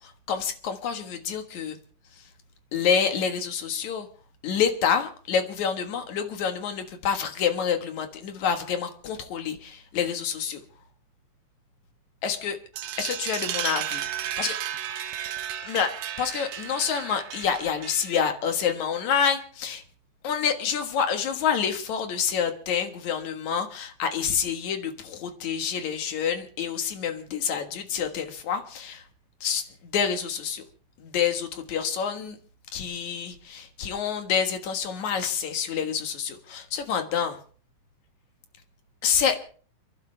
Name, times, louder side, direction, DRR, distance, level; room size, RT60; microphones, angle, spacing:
voice 1, 0.0-1.8 2.7-4.1 4.4-10.6 12.2-12.6 13.0-14.6 15.6-15.9 16.2-19.8 20.2-29.0 29.4-30.6 31.0-32.4 32.7-37.4 39.0-39.4, left 7 dB, 65° left, 6 dB, 2.8 m, -27 dB
sound 1, 12.8-18.3, right 11 dB, 70° right, 1.7 m, -33 dB
29.5 x 11.5 x 3.3 m, 0.42 s
omnidirectional pair, 3.7 m